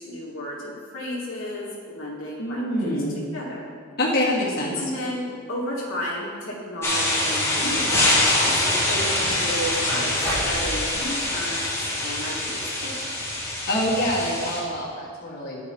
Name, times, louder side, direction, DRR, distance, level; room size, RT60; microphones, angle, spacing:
voice 1, 0.0-3.0 3.3-3.6 4.8-12.9, equal, 75° left, -5 dB, 1.4 m, -33 dB
voice 2, 2.4-3.2 4.0-4.8 13.7-15.6, left 1 dB, 50° left, -5 dB, 1.7 m, -25 dB
sound 1, 6.8-14.6, left 1 dB, 15° left, 1.4 m, -24 dB
10.5 x 4.8 x 4.3 m, 2.1 s
head